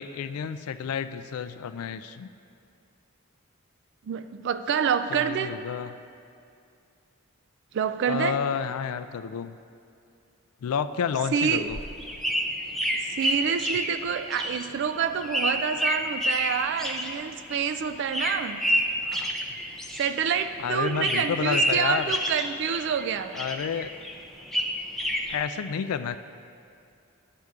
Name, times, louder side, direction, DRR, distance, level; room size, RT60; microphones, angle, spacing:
voice 1, 0.0-2.3 5.1-6.0 8.1-9.6 10.6-11.8 19.0-19.3 20.6-22.1 23.3-23.9 25.3-26.2, left 7 dB, 80° left, 12 dB, 0.3 m, -30 dB
voice 2, 4.1-5.5 7.7-8.4 11.3-11.7 13.1-18.6 20.0-23.3, right 7 dB, 55° right, 10 dB, 0.3 m, -27 dB
sound 1, 11.5-20.6 20.8-23.1 23.3-25.4, equal, ahead, 0.5 m, -29 dB
10.5 x 7.7 x 3.6 m, 2.5 s
head